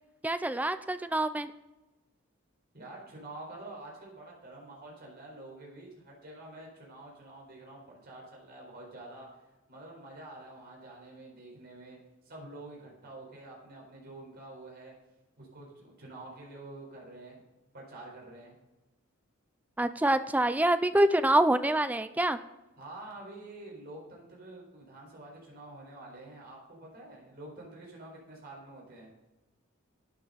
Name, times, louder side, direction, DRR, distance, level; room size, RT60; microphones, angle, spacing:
voice 1, 0.2-1.5 19.8-22.4, right 1 dB, 5° right, 11 dB, 0.4 m, -26 dB
voice 2, 2.7-9.4 9.7-12.0 12.2-14.9 15.4-17.4 17.7-18.6 22.7-29.1, right 2 dB, 50° right, -2 dB, 4.3 m, -47 dB
12.0 x 9.4 x 4.0 m, 1.0 s
head